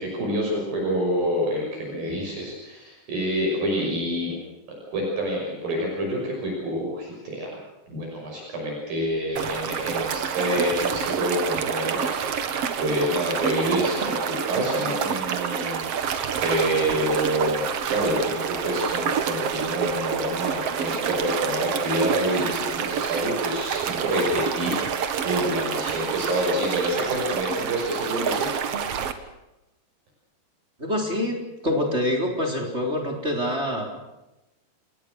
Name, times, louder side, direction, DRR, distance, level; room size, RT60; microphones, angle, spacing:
voice 1, 0.0-4.4 4.7-7.5 7.9-28.5, equal, 50° right, -1 dB, 7.7 m, -27 dB
sound 1, 9.4-29.1, right 7 dB, 75° right, 1.4 m, -28 dB
voice 2, 30.8-34.0, left 1 dB, 15° right, 2 dB, 3.8 m, -26 dB
29.0 x 19.5 x 6.4 m, 0.97 s
omnidirectional pair, 5.1 m